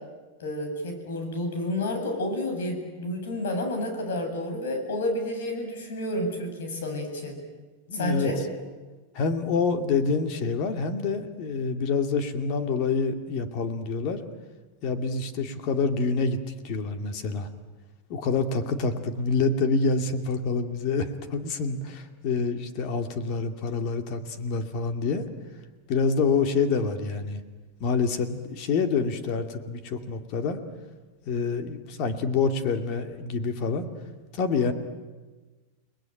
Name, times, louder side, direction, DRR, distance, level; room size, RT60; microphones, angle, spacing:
voice 1, 0.4-7.4 7.9-8.4, left 1 dB, 90° left, 5 dB, 8.0 m, -30 dB
voice 2, 7.9-8.3 9.1-14.2 14.8-16.4 16.6-17.5 18.1-25.3 25.9-27.4 27.8-30.6 31.3-33.9 34.3-34.7, left 4 dB, 40° left, 7 dB, 2.4 m, -27 dB
30.0 x 21.0 x 9.2 m, 1.3 s
supercardioid pair, 165°, 0 cm